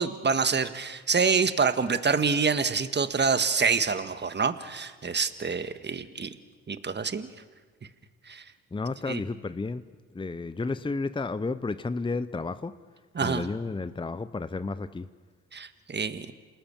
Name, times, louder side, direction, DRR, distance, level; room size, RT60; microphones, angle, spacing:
voice 1, 0.0-6.3 6.7-7.3 8.3-8.4 9.1-9.2 13.1-13.5 15.5-16.3, right 5 dB, 35° right, 11 dB, 1.6 m, -26 dB
voice 2, 8.7-9.8 10.1-12.8 13.2-15.1, left 3 dB, 15° left, 14 dB, 0.8 m, -32 dB
28.0 x 19.5 x 7.3 m, 1.4 s
supercardioid pair, 60°, 32 cm